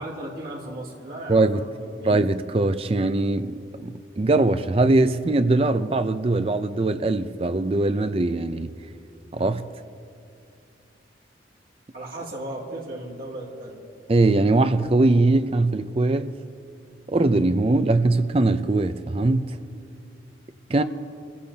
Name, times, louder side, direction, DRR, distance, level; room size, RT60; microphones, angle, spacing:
voice 1, 0.0-2.1 11.9-13.8, right 1 dB, 50° right, 2.4 m, -36 dB
voice 2, 1.3-1.6 2.0-8.7 9.3-9.7 14.1-16.4 17.1-19.6 20.7-20.8, right 2 dB, 30° right, 0.4 m, -21 dB
25.5 x 16.0 x 2.8 m
head